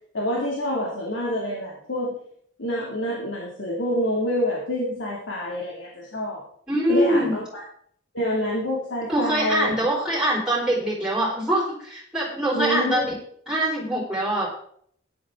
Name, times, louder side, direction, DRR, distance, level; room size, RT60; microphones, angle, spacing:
voice 1, 0.1-2.2 2.6-6.4 6.9-7.6 8.1-9.8 12.5-13.1, equal, 80° left, -3 dB, 2.6 m, -27 dB
voice 2, 6.7-7.3 9.1-13.0 13.5-14.6, right 1 dB, 5° right, -5 dB, 4.5 m, -23 dB
13.5 x 10.5 x 3.8 m, 0.63 s
head